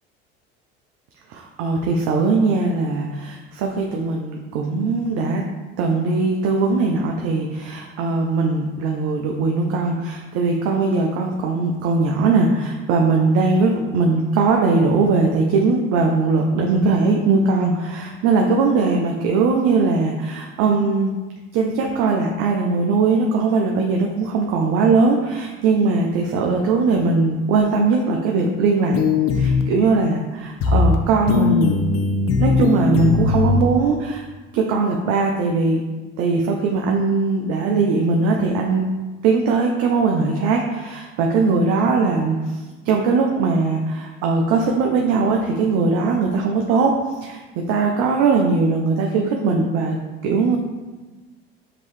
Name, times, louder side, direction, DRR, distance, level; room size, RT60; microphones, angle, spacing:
voice 1, 1.3-5.4 5.8-21.1 21.5-29.0 29.3-31.8 32.4-34.2 34.5-35.8 36.2-38.9 39.2-50.0 50.2-50.6, right 4 dB, 60° right, 1 dB, 0.5 m, -20 dB
sound 1, 28.9-29.6 30.6-31.0 31.3-33.6, left 5 dB, 50° left, 0.6 m, -19 dB
5.2 x 2.8 x 3.1 m, 1.3 s
hypercardioid pair, 70°, 30 cm